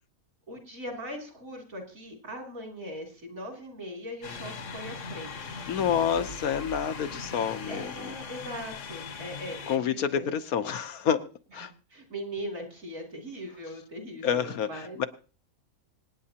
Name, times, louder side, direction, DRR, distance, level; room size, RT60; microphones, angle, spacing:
voice 1, 0.5-5.7 5.9-6.3 7.7-10.3 11.9-15.0, equal, 65° right, 1 dB, 3.5 m, -40 dB
sound 1, 4.2-9.8, left 5 dB, 60° left, 1.3 m, -40 dB
voice 2, 5.7-8.1 9.7-11.2 11.5-11.7 14.2-15.0, left 8 dB, 80° left, 10 dB, 1.3 m, -28 dB
26.0 x 9.4 x 2.9 m, 0.39 s
omnidirectional pair, 1.5 m